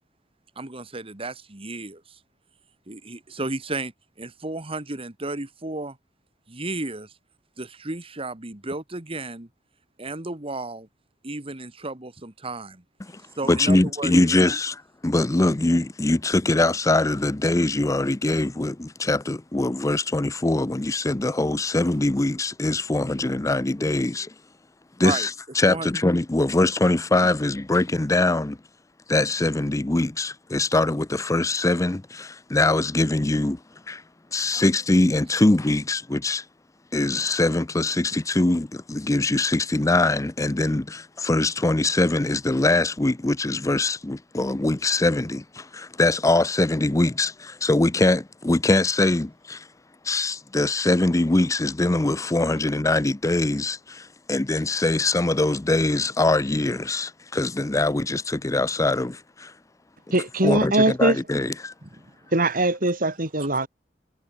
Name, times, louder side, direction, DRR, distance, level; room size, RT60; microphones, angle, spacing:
voice 1, 0.6-2.2 2.9-3.9 4.2-6.0 6.5-7.1 7.6-9.5 10.0-10.9 11.2-12.8 13.4-14.1 14.4-14.5 25.0-25.3 25.7-25.9 61.8-61.9, right 2 dB, 35° right, 2.0 m, -33 dB
voice 2, 13.5-24.3 25.0-28.6 29.1-33.6 33.9-34.0 34.3-36.5 36.9-49.7 50.0-59.5 60.4-61.7, left 2 dB, 20° left, 0.6 m, -23 dB
voice 3, 60.1-61.2 62.3-63.7, right 2 dB, 55° right, 4.1 m, -21 dB
head